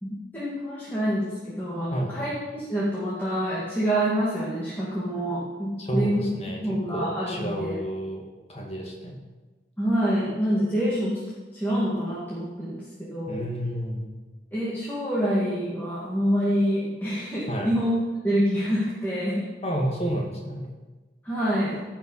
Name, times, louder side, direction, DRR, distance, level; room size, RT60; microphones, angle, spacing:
voice 1, 0.0-6.3 6.6-7.8 9.8-11.2 11.5-12.8 13.1-13.4 14.5-17.9 18.2-19.4 21.2-21.8, equal, 10° left, -9 dB, 2.1 m, -26 dB
voice 2, 1.9-2.3 5.8-6.6 6.9-9.2 13.3-14.1 17.5-17.7 19.6-20.7, equal, 30° left, 0 dB, 2.0 m, -30 dB
15.5 x 5.8 x 5.6 m, 1.2 s
head